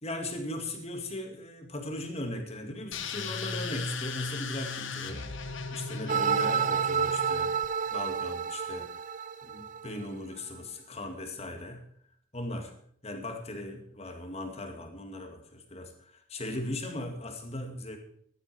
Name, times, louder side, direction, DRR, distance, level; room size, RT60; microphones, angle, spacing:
voice 1, 0.0-5.3 5.7-7.5 7.9-8.9 9.4-11.9 12.3-12.7 13.0-18.0, left 1 dB, 30° left, 5 dB, 2.2 m, -38 dB
sound 1, 2.9-7.7, left 4 dB, 70° left, 1.5 m, -37 dB
sound 2, 6.1-10.1, right 7 dB, 40° right, 0.4 m, -30 dB
15.0 x 11.5 x 4.9 m, 0.65 s
head